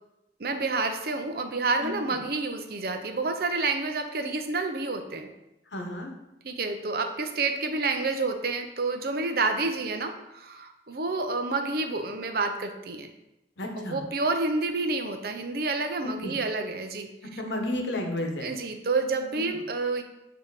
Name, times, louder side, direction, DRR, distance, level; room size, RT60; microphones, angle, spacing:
voice 1, 0.4-5.3 6.4-13.1 13.8-17.4 18.4-20.0, right 3 dB, 55° right, 6 dB, 0.6 m, -29 dB
voice 2, 1.8-2.2 5.7-6.1 13.6-14.0 16.0-16.3 17.2-18.5, left 1 dB, 85° left, 2 dB, 1.0 m, -32 dB
7.0 x 2.9 x 4.7 m, 0.91 s
head